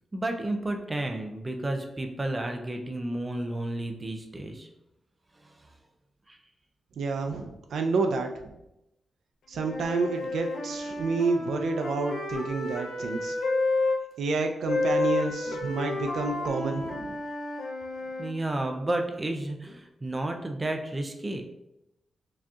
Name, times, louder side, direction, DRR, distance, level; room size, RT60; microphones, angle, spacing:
voice 1, 0.1-4.7 6.3-6.4 18.2-21.4, right 1 dB, 20° right, 4 dB, 0.4 m, -31 dB
voice 2, 7.0-8.5 9.5-13.4 14.2-17.2, right 4 dB, 85° right, 5 dB, 0.4 m, -29 dB
Wind instrument woodwind instrument, 9.5-14.0 14.7-18.3, left 2 dB, 85° left, 0.5 m, -30 dB
4.8 x 2.8 x 2.3 m, 0.89 s
wide cardioid pair, 125°, 0 cm